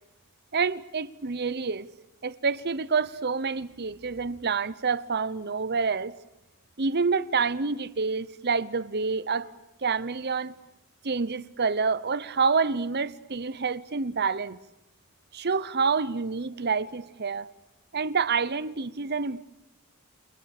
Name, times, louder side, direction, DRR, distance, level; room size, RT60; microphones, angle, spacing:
voice 1, 0.5-1.9 2.2-6.1 6.8-9.5 9.8-10.5 11.0-14.6 15.3-17.5 17.9-19.4, right 5 dB, 50° right, 0.9 m, -27 dB
29.5 x 28.5 x 6.7 m
head